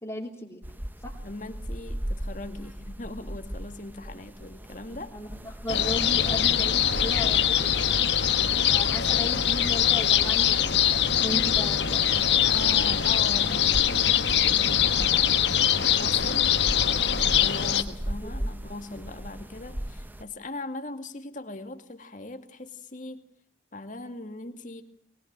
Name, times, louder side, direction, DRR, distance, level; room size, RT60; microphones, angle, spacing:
voice 1, 0.0-0.6 1.0-1.2 5.1-7.7 8.7-12.1 18.2-18.5, left 1 dB, 20° left, -4 dB, 3.1 m, -36 dB
sound 1, 0.6-20.2, equal, 10° right, 1.1 m, -38 dB
voice 2, 1.2-5.1 12.5-15.3 16.0-16.6 17.4-23.2 23.7-24.8, left 2 dB, 45° left, 7 dB, 2.3 m, -39 dB
sound 2, 5.7-17.8, left 9 dB, 75° left, 1.5 m, -23 dB
23.0 x 21.0 x 9.0 m, 0.63 s
head